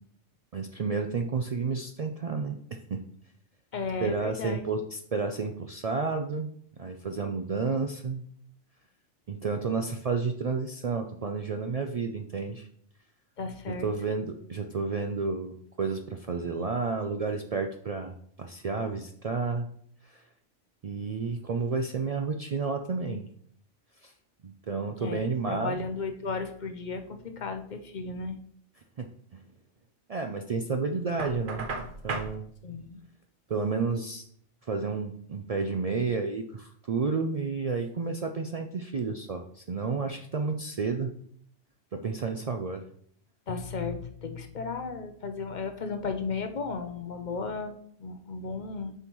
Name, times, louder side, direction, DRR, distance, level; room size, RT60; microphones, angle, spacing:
voice 1, 0.5-3.0 4.0-6.5 6.8-8.2 9.3-12.7 13.7-19.7 20.0-20.2 20.8-23.2 24.0-24.1 24.4-25.7 29.0-29.4 30.1-31.7 32.0-32.5 33.5-34.2 34.7-41.1 41.9-42.8, right 4 dB, 70° right, 5 dB, 0.3 m, -31 dB
voice 2, 3.7-4.6 13.4-13.9 25.0-25.2 25.5-28.4 32.6-33.0 43.5-48.9, left 4 dB, 45° left, 7 dB, 0.7 m, -34 dB
Knock, 31.2-32.3, right 3 dB, 50° right, 1.0 m, -35 dB
7.8 x 5.7 x 3.0 m, 0.64 s
omnidirectional pair, 1.2 m